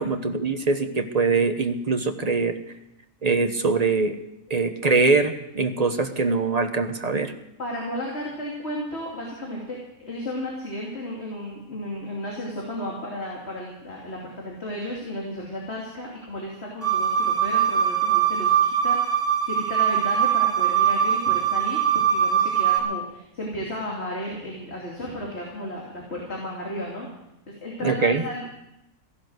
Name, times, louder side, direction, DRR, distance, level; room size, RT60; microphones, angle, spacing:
voice 1, 0.0-2.6 3.2-4.2 4.5-7.3 27.8-28.2, right 4 dB, 30° right, 8 dB, 0.9 m, -23 dB
voice 2, 7.6-27.1 27.5-28.5, left 1 dB, 45° left, -3 dB, 3.2 m, -34 dB
sound 1, 16.8-22.8, right 9 dB, 15° left, 2.2 m, -22 dB
15.5 x 11.5 x 7.9 m, 0.89 s
omnidirectional pair, 1.5 m